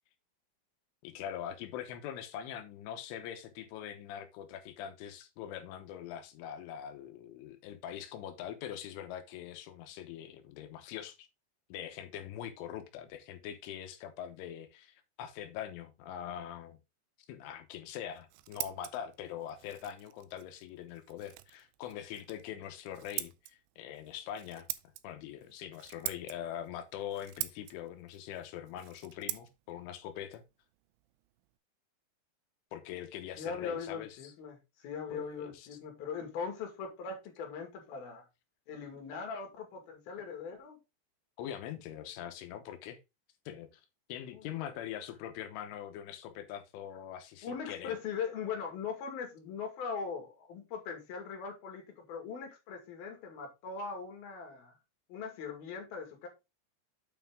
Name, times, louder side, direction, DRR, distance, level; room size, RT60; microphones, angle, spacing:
voice 1, 1.0-11.3 11.7-16.8 17.3-24.7 25.0-30.4 32.7-34.3 35.1-35.7 41.4-43.0 43.5-43.8 44.1-48.0, left 10 dB, 85° left, 3.6 m, -43 dB
Scissors, 18.0-31.6, right 17 dB, 80° right, 2.7 m, -45 dB
voice 2, 33.4-38.2 38.7-40.8 44.3-44.8 47.4-54.8 55.1-56.3, left 6 dB, 55° left, 3.8 m, -40 dB
8.4 x 6.0 x 3.8 m
omnidirectional pair, 5.4 m